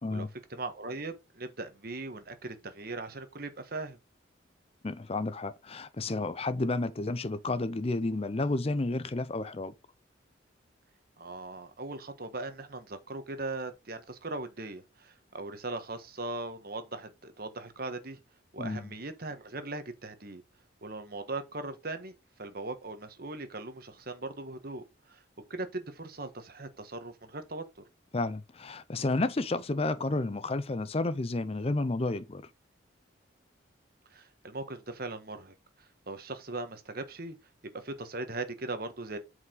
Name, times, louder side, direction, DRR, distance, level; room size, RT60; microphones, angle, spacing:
voice 1, 0.1-4.0 11.2-18.2 18.5-20.4 20.8-25.2 25.5-27.8 34.1-37.4 37.6-39.2, right 2 dB, 50° right, 1.3 m, -39 dB
voice 2, 4.8-9.7 18.6-18.8 28.1-32.4, left 2 dB, 30° left, 0.5 m, -31 dB
8.2 x 4.9 x 3.9 m
head